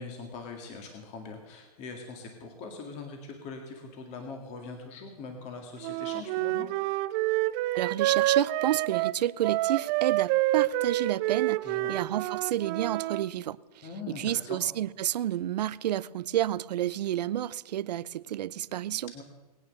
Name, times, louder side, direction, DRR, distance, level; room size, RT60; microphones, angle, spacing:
voice 1, 0.0-6.7 11.6-12.0 13.8-14.6 19.1-19.2, left 4 dB, 35° left, 2.0 m, -42 dB
Wind instrument woodwind instrument, 5.8-13.3, right 17 dB, 35° right, 0.5 m, -28 dB
voice 2, 7.7-13.9 14.2-19.1, right 12 dB, 85° right, 0.6 m, -30 dB
20.5 x 9.4 x 6.6 m
hypercardioid pair, 145°, 20 cm